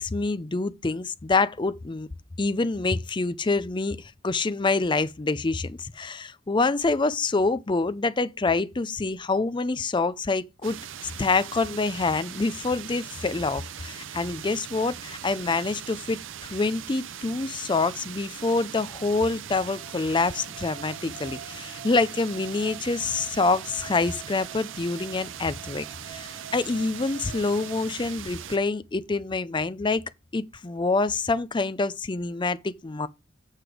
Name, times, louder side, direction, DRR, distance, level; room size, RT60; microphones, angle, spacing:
voice 1, 0.0-2.1 2.4-10.8 11.2-30.0 30.3-33.1, left 3 dB, 20° left, 0.5 m, -26 dB
sound 1, 10.6-28.6, right 9 dB, 60° right, 0.6 m, -40 dB
sound 2, 19.4-28.6, right 5 dB, 40° right, 1.5 m, -47 dB
7.9 x 6.6 x 5.0 m
head